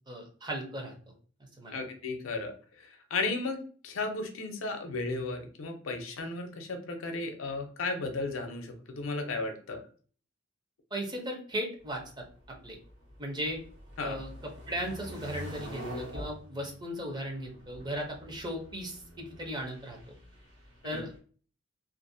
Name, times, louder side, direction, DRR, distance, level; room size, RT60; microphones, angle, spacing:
voice 1, 0.1-0.9 1.6-1.9 10.9-12.8 13.2-13.6 14.0-20.0 20.8-21.1, equal, 20° right, 1 dB, 0.5 m, -37 dB
voice 2, 1.7-2.5 2.8-9.8 14.0-14.2 20.9-21.0, left 3 dB, 85° left, 5 dB, 0.5 m, -34 dB
sound 1, 11.8-21.2, equal, 60° right, 1.2 m, -46 dB
2.4 x 2.0 x 2.6 m, 0.42 s
head